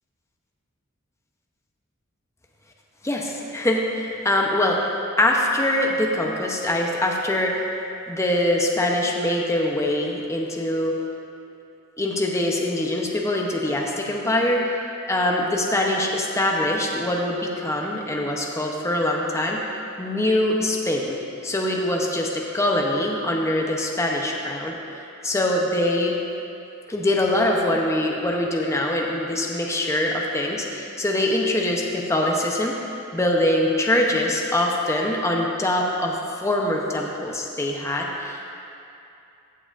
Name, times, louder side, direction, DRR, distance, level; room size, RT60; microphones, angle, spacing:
voice 1, 3.0-4.8 5.2-7.5 8.1-11.0 12.0-14.8 15.1-19.6 20.0-21.2 21.4-24.7 25.2-26.2 26.9-32.8 33.1-38.5, left 1 dB, 15° left, -1 dB, 0.8 m, -23 dB
15.0 x 7.7 x 2.5 m, 2.7 s
head